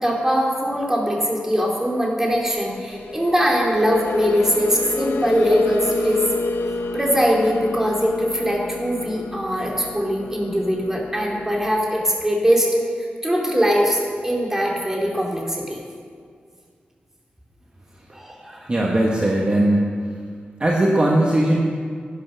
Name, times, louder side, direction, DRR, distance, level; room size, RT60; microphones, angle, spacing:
voice 1, 0.0-6.2 6.9-12.7 13.0-15.8 18.1-18.7, equal, 10° right, -2 dB, 2.8 m, -21 dB
sound 1, 2.6-11.6, left 3 dB, 80° left, 0.8 m, -30 dB
voice 2, 18.7-20.0 20.6-21.6, right 1 dB, 30° right, -1 dB, 1.3 m, -18 dB
11.5 x 10.5 x 6.2 m, 2.1 s
wide cardioid pair, 100°, 4 cm